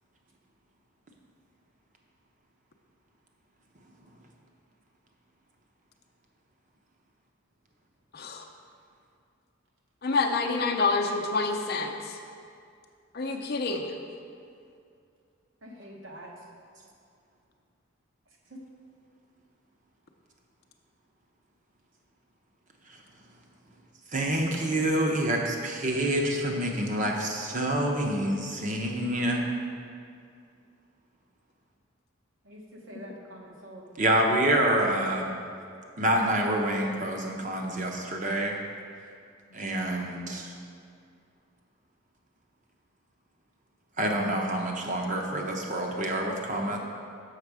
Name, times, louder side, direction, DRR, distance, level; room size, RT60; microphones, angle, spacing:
voice 1, 8.1-8.4 10.0-12.2 13.1-13.9, left 3 dB, 50° left, 3 dB, 0.5 m, -27 dB
voice 2, 15.6-16.3 18.5-18.6 32.4-33.9, equal, 65° right, -1 dB, 1.1 m, -45 dB
voice 3, 24.1-29.4 34.0-35.3 36.0-38.6 39.5-40.5 44.0-46.8, right 1 dB, 35° right, 1 dB, 0.8 m, -27 dB
6.6 x 6.3 x 4.8 m, 2.4 s
head